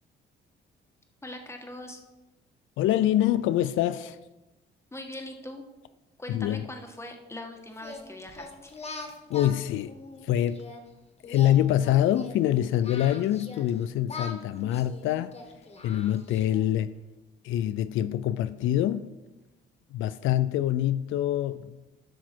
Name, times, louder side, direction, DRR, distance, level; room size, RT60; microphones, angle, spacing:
voice 1, 1.2-2.0 4.9-5.6 6.2-8.7, left 1 dB, 15° left, 1.6 m, -41 dB
voice 2, 2.8-4.2 6.3-6.7 9.3-9.9 10.2-10.6 11.2-15.3 15.8-16.9 17.4-19.1 19.9-21.8, left 12 dB, 85° left, 0.4 m, -25 dB
Singing, 7.8-10.8 11.2-13.7 14.1-16.7, left 3 dB, 30° left, 1.8 m, -42 dB
11.5 x 6.2 x 4.5 m
cardioid pair, 90°, 20 cm